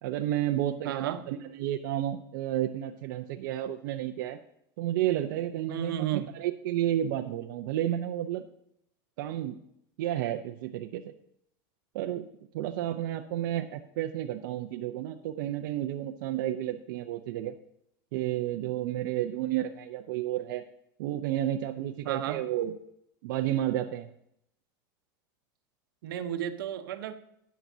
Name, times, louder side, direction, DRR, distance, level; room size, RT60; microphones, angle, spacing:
voice 1, 0.0-4.4 4.8-8.4 9.2-9.6 10.0-11.1 11.9-12.3 12.5-17.5 18.1-20.6 21.0-22.7 23.2-24.1, right 12 dB, 70° right, 5 dB, 0.7 m, -31 dB
voice 2, 0.8-1.3 5.7-6.3 22.0-22.4 26.0-27.1, right 11 dB, 90° right, 8 dB, 1.0 m, -32 dB
13.5 x 9.3 x 2.8 m, 0.75 s
supercardioid pair, 135°, 11 cm